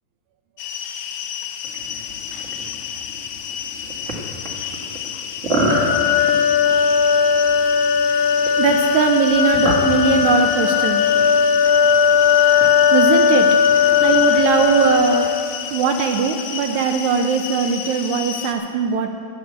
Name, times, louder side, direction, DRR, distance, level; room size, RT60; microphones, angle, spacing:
sound 1, 0.6-18.5, left 9 dB, 80° left, 2.0 m, -31 dB
sound 2, 1.6-15.1, right 1 dB, 35° right, 1.3 m, -30 dB
sound 3, 5.7-15.6, left 7 dB, 45° left, 1.3 m, -17 dB
voice 1, 8.6-11.1 12.9-13.5 14.0-15.3 15.7-19.1, right 6 dB, 80° right, 5 dB, 1.8 m, -20 dB
11.0 x 7.9 x 8.1 m, 2.4 s
omnidirectional pair, 3.6 m